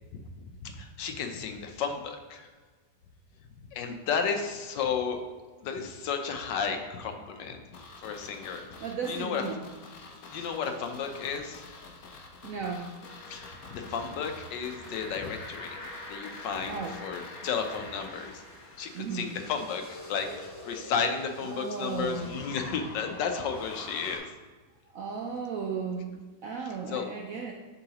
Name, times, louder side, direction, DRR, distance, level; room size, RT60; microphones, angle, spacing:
voice 1, 0.6-2.5 3.7-5.2 5.6-7.6 8.0-8.8 9.1-9.4 10.3-11.7 13.3-15.8 16.1-18.4 18.8-24.3 26.9-27.1, left 6 dB, 75° left, 5 dB, 1.4 m, -33 dB
sound 1, 7.7-18.7 18.9-19.0, left 3 dB, 60° left, 1.1 m, -49 dB
voice 2, 8.8-9.6 12.4-13.0 16.7-16.9 18.9-19.3 21.4-22.3 24.9-27.5, right 5 dB, 70° right, 1 dB, 0.8 m, -35 dB
sound 2, 13.0-24.2, left 1 dB, 30° left, 1.7 m, -46 dB
10.5 x 3.9 x 2.9 m, 1.4 s
omnidirectional pair, 2.0 m